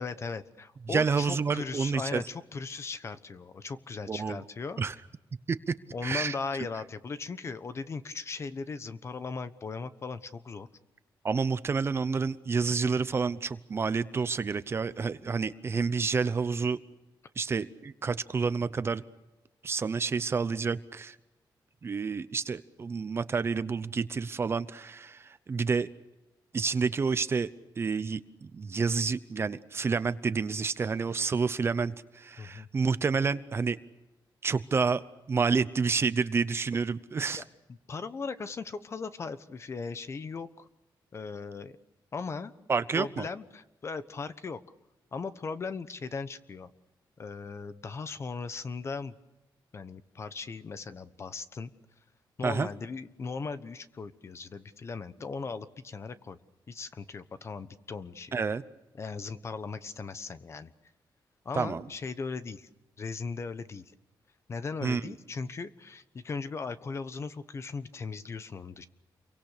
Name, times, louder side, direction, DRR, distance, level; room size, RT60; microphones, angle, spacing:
voice 1, 0.0-4.8 5.9-10.7 32.4-32.7 37.3-37.4 37.9-40.7 41.1-41.8 42.1-42.5 42.9-44.6 45.1-46.7 47.2-49.2 49.7-51.7 52.4-56.4 56.7-58.3 59.0-60.7 61.4-62.7 63.0-63.9 64.5-68.8, left 4 dB, 35° left, 12 dB, 1.1 m, -38 dB
voice 2, 0.9-2.2 4.1-4.4 4.8-4.9 5.5-5.7 6.0-6.3 11.2-16.8 17.4-19.0 19.6-21.2 21.8-25.9 26.5-27.5 27.8-28.2 28.5-33.8 34.4-35.0 35.3-37.4 42.7-43.3 52.4-52.7 58.3-58.6 61.6-61.8 64.8-65.1, right 5 dB, 30° right, 14 dB, 0.8 m, -29 dB
29.0 x 23.5 x 6.8 m, 0.99 s
wide cardioid pair, 160°, 8 cm